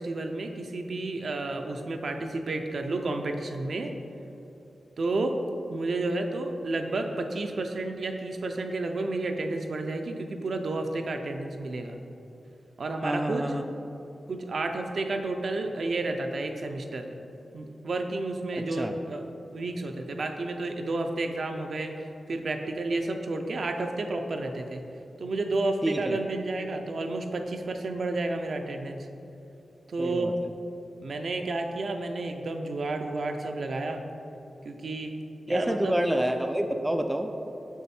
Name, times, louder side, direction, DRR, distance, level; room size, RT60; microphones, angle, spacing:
voice 1, 0.0-3.9 5.0-5.4 5.7-12.0 12.8-13.4 14.3-17.1 17.5-19.2 19.5-21.9 22.3-24.8 25.2-29.1 29.9-30.3 31.0-34.0 34.6-35.1 35.5-36.0, right 2 dB, 60° right, 5 dB, 0.6 m, -31 dB
voice 2, 13.0-13.6 18.5-19.0 25.8-26.2 30.0-30.5 35.5-37.3, right 1 dB, 10° right, 5 dB, 0.3 m, -28 dB
7.1 x 6.2 x 4.3 m, 2.9 s
wide cardioid pair, 135°, 0 cm